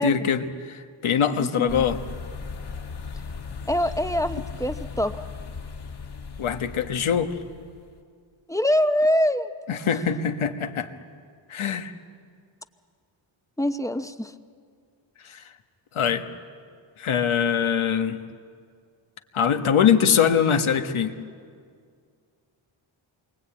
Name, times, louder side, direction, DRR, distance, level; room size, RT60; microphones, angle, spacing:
voice 1, 0.0-2.0 6.4-7.4 9.7-10.9 11.5-11.9 15.2-15.4 15.9-16.3 17.0-18.2 19.3-21.1, left 7 dB, 80° left, 6 dB, 1.6 m, -23 dB
voice 2, 1.4-1.9 3.7-5.2 8.5-9.5 13.6-14.3, left 1 dB, 5° left, 9 dB, 0.9 m, -24 dB
sound 1, 1.7-8.0, left 5 dB, 50° left, 1.9 m, -37 dB
28.0 x 23.0 x 8.8 m, 2.1 s
wide cardioid pair, 115°, 49 cm